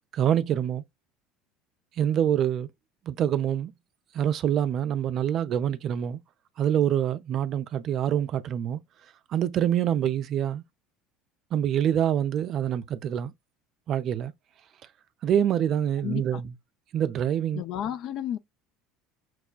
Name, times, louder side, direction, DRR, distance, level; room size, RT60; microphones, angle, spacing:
voice 1, 0.1-0.8 2.0-2.7 3.1-3.7 4.1-6.2 6.6-8.8 9.3-10.6 11.5-13.3 13.9-14.3 15.2-16.5 16.9-17.6, right 10 dB, 45° right, 0.4 m, -25 dB
voice 2, 16.0-16.4 17.5-18.4, left 10 dB, 50° left, 0.4 m, -32 dB
5.9 x 2.2 x 2.3 m
figure-of-eight pair, 65°, 0 cm